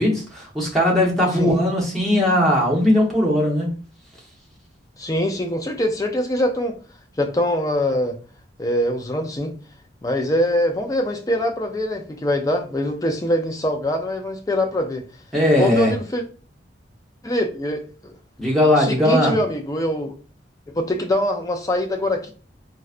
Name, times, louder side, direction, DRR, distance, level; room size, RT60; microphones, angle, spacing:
voice 1, 0.0-3.7 15.3-15.9 18.4-19.3, left 1 dB, ahead, 0.8 m, -18 dB
voice 2, 5.0-6.7 7.2-8.2 8.6-9.5 10.0-15.0 15.6-16.2 17.2-18.1 18.7-20.1 20.7-22.3, left 1 dB, 20° left, 0.4 m, -23 dB
3.9 x 2.1 x 2.4 m
head